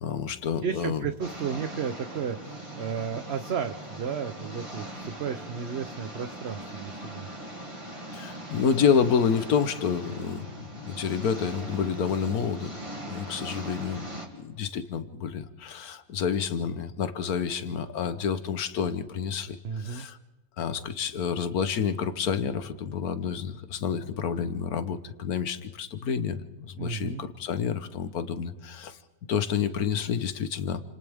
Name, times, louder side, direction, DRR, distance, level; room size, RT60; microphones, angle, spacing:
voice 1, 0.0-1.0 8.1-12.7 13.0-14.0 14.4-20.2 20.6-29.0 29.3-30.8, left 7 dB, 85° left, 11 dB, 1.5 m, -29 dB
voice 2, 0.6-7.3 19.6-20.1 26.8-27.2, right 7 dB, 50° right, 8 dB, 1.0 m, -33 dB
sound 1, 1.2-14.3, right 1 dB, 20° right, 2.8 m, -40 dB
29.5 x 27.0 x 3.6 m, 1.1 s
omnidirectional pair, 1.5 m